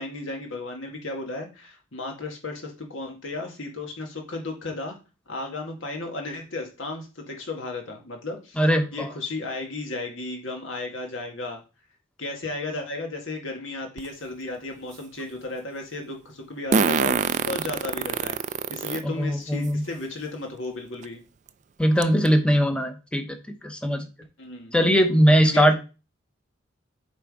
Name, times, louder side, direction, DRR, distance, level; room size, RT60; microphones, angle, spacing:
voice 1, 0.0-5.0 5.3-8.6 8.9-11.6 12.2-18.4 18.7-21.2 24.4-24.7 25.4-25.8, left 2 dB, 75° left, 2 dB, 1.8 m, -34 dB
voice 2, 8.6-9.1 19.2-19.8 21.8-23.2 23.6-24.0 24.7-25.7, equal, 5° left, 7 dB, 0.8 m, -20 dB
Fart, 14.0-14.1 16.7-19.0 19.6-19.7 21.0-21.1 21.5-21.6 22.0-22.3, right 5 dB, 35° right, 0.3 m, -24 dB
7.5 x 3.5 x 4.9 m, 0.31 s
head